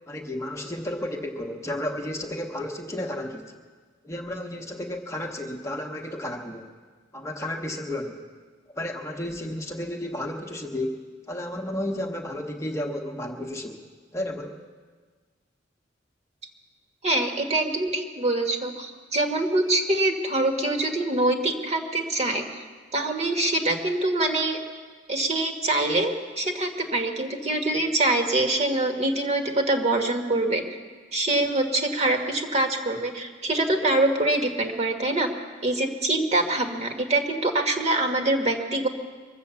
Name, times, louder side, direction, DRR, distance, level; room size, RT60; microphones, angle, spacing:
voice 1, 0.1-3.5 4.0-6.7 7.1-8.3 8.7-11.0 11.3-13.8 14.1-14.6, left 1 dB, 15° left, 1 dB, 1.0 m, -32 dB
voice 2, 17.0-22.6 22.9-24.6 25.1-30.8 31.1-35.3 35.6-38.9, right 2 dB, 35° right, 4 dB, 1.5 m, -24 dB
23.5 x 7.8 x 7.0 m, 1.5 s
head